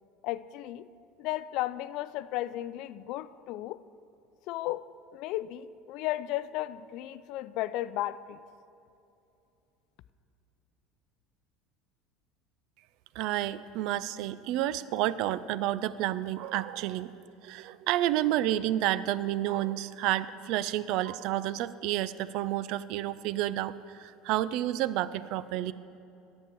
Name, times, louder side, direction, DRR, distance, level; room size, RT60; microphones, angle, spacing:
voice 1, 0.2-0.9 1.2-3.8 4.5-8.4, left 14 dB, 65° left, 16 dB, 0.3 m, -34 dB
voice 2, 13.2-25.7, right 13 dB, 65° right, 17 dB, 0.3 m, -30 dB
9.8 x 6.5 x 7.5 m, 2.7 s
supercardioid pair, 100°, 0 cm